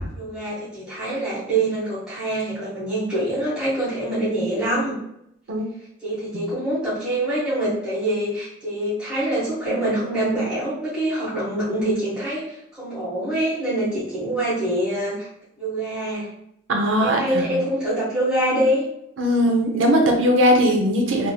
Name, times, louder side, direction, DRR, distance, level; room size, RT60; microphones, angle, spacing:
voice 1, 0.0-5.0 6.0-15.3 15.6-16.3 17.0-18.9, right 1 dB, 5° right, -12 dB, 1.4 m, -25 dB
voice 2, 16.7-17.5 19.2-21.3, equal, 80° right, 2 dB, 0.7 m, -19 dB
3.5 x 3.0 x 2.3 m, 0.77 s
head